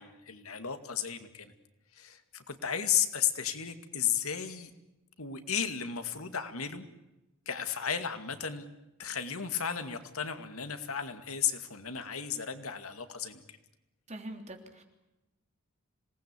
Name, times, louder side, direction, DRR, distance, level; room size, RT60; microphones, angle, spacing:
voice 1, 0.0-1.5 1.9-4.7 5.2-6.9 7.5-8.7 9.0-13.6, left 8 dB, 85° left, 9 dB, 2.3 m, -34 dB
voice 2, 14.1-14.8, right 1 dB, 35° right, 5 dB, 3.3 m, -43 dB
26.5 x 19.0 x 8.4 m, 0.96 s
head